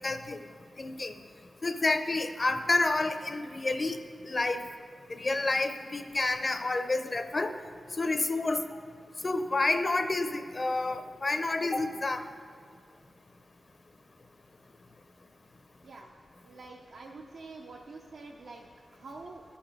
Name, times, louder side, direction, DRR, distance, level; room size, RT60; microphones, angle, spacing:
voice 1, 0.0-0.4 0.8-1.1 1.6-4.0 4.2-4.6 5.1-7.5 8.0-8.6 9.2-12.2, left 2 dB, 35° left, 9 dB, 0.5 m, -29 dB
voice 2, 16.4-19.4, right 3 dB, 80° right, 0 dB, 0.6 m, -47 dB
13.0 x 5.9 x 5.3 m, 2.2 s
wide cardioid pair, 90°, 0 cm